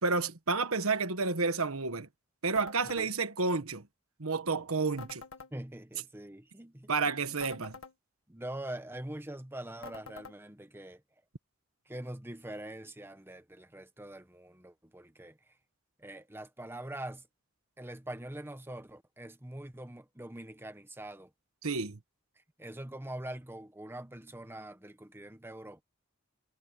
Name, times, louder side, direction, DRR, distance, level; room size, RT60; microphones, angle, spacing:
voice 1, 0.0-2.1 2.4-3.8 4.2-5.2 6.9-7.8 21.6-22.0, right 4 dB, 80° right, 1.4 m, -30 dB
sound 1, 2.6-3.1 5.0-5.5 7.4-7.9 9.8-10.4, left 4 dB, 75° left, 1.7 m, -47 dB
voice 2, 5.5-7.1 7.6-7.7 8.3-11.0 11.9-15.5 16.0-17.3 17.8-21.3 22.6-25.8, right 1 dB, 10° right, 1.2 m, -44 dB
head